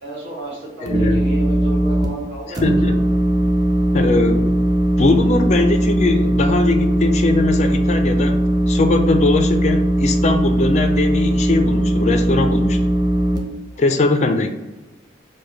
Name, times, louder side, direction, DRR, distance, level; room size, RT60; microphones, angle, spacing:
voice 1, 0.0-3.1 13.7-14.1, right 2 dB, 70° right, -5 dB, 1.3 m, -33 dB
voice 2, 0.8-1.3 2.6-3.0 3.9-4.6 5.0-8.4 8.7-12.8 13.8-14.5, left 3 dB, 35° left, 6 dB, 0.3 m, -20 dB
sound 1, 0.9-2.0 2.5-13.4, right 1 dB, 20° right, 0.5 m, -18 dB
4.8 x 2.2 x 4.0 m, 1.1 s
head